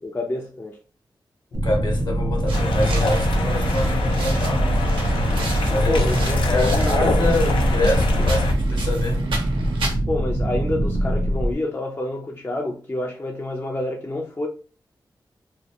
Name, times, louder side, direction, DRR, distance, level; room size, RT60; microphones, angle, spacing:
voice 1, 0.0-0.8 5.7-7.1 8.2-8.3 10.1-14.5, left 1 dB, 30° left, 0.4 m, -28 dB
voice 2, 1.5-5.0 5.7-9.2, left 2 dB, 60° left, 0.9 m, -26 dB
sound 1, 1.5-11.6, right 1 dB, 35° right, 0.4 m, -23 dB
sound 2, 2.5-8.5, left 2 dB, 90° left, 0.4 m, -24 dB
sound 3, 2.5-9.9, right 3 dB, 90° right, 0.6 m, -35 dB
2.1 x 2.1 x 2.7 m
cardioid pair, 45°, 8 cm